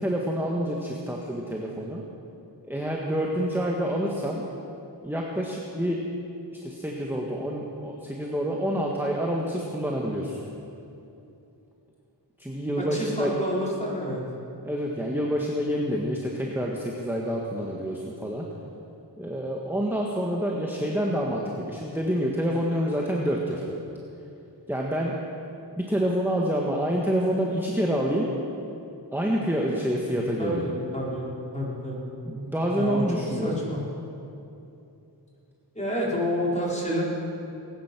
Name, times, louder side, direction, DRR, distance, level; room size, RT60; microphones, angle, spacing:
voice 1, 0.0-2.0 2.7-4.4 5.0-6.1 6.6-10.4 12.4-13.3 14.6-18.5 19.2-23.6 24.7-25.1 25.8-28.3 29.1-30.7 32.2-33.5, equal, 5° right, -2 dB, 1.5 m, -27 dB
voice 2, 12.8-14.2 30.2-32.0 32.8-33.8 35.7-37.0, equal, 15° left, -5 dB, 4.4 m, -29 dB
19.5 x 10.5 x 6.1 m, 2.8 s
wide cardioid pair, 60°, 44 cm